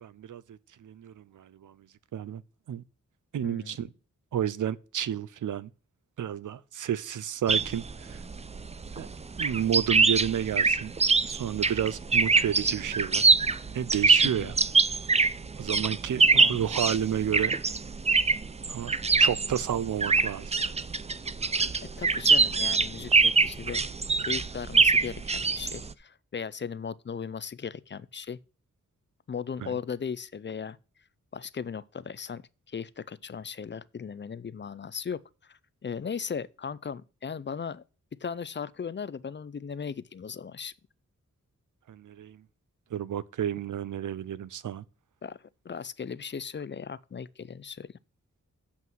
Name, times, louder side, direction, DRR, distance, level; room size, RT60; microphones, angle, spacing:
voice 1, 0.0-1.8 2.1-2.4 2.7-2.8 3.3-3.9 4.3-5.7 6.2-8.2 8.9-9.1 9.4-10.9 11.3-13.2 13.7-14.6 15.6-17.5 18.7-20.5 29.6-29.7 41.9-42.4 42.9-44.8, right 9 dB, 85° right, 0.5 m, -31 dB
voice 2, 3.4-3.8 14.2-14.5 16.3-16.6 21.8-23.8 24.2-28.4 29.3-30.8 31.3-37.8 38.2-40.7 45.2-48.0, left 6 dB, 40° left, 0.4 m, -37 dB
sound 1, 7.5-25.9, right 4 dB, 20° right, 0.4 m, -24 dB
7.6 x 5.7 x 6.0 m
wide cardioid pair, 110°, 30 cm